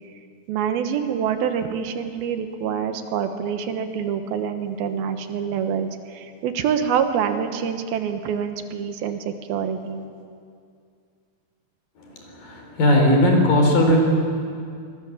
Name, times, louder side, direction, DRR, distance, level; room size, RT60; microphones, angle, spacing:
voice 1, 0.5-10.0, right 7 dB, 80° right, 8 dB, 3.1 m, -26 dB
voice 2, 12.0-14.0, left 1 dB, 65° left, 2 dB, 5.5 m, -18 dB
25.0 x 21.0 x 7.3 m, 2.3 s
omnidirectional pair, 4.3 m